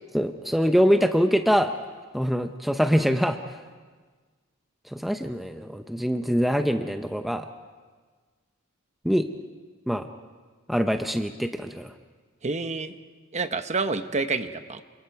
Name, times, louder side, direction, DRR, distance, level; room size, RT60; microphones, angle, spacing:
voice 1, 0.1-1.7 2.1-3.4 4.9-7.5 9.0-9.3 9.9-10.1 10.7-11.9, equal, ahead, 6 dB, 0.7 m, -24 dB
voice 2, 12.4-12.9 13.3-14.8, right 3 dB, 30° right, 9 dB, 1.0 m, -28 dB
29.5 x 27.0 x 4.7 m, 1.4 s
head